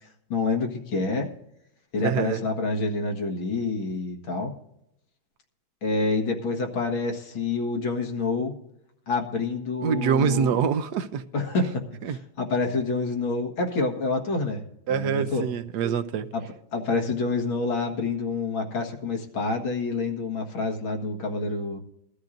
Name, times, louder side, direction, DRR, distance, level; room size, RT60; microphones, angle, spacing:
voice 1, 0.3-1.3 1.9-4.5 5.8-8.6 9.1-10.5 11.3-14.6 14.9-15.4 16.3-16.4 16.7-21.8, left 3 dB, 75° left, 2.5 m, -27 dB
voice 2, 2.0-2.4 9.8-11.2 12.0-12.2 14.9-16.3, right 7 dB, 65° right, 1.1 m, -25 dB
21.0 x 13.0 x 2.6 m
omnidirectional pair, 2.2 m